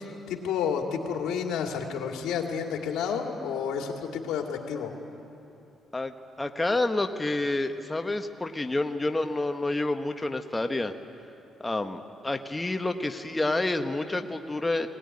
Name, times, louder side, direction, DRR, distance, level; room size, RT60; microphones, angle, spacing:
voice 1, 0.3-4.9, left 7 dB, 90° left, 2 dB, 2.3 m, -30 dB
voice 2, 6.4-10.9 11.6-14.9, left 2 dB, 15° left, 6 dB, 1.0 m, -28 dB
21.0 x 18.5 x 9.7 m, 2.8 s
cardioid pair, 90°, 0 cm